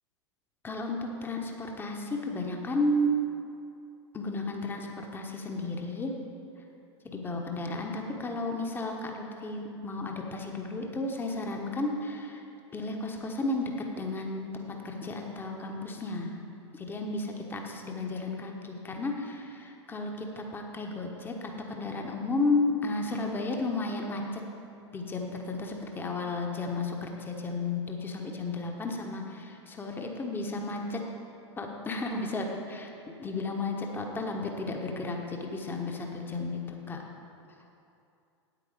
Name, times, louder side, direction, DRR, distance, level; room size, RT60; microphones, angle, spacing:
voice 1, 0.6-3.1 4.1-6.1 7.0-12.4 12.7-13.7 14.0-16.4 16.7-24.4 24.9-31.0 31.6-37.0, left 2 dB, 15° left, 2 dB, 1.1 m, -33 dB
9.4 x 8.7 x 5.0 m, 2.6 s
figure-of-eight pair, 90°, 15 cm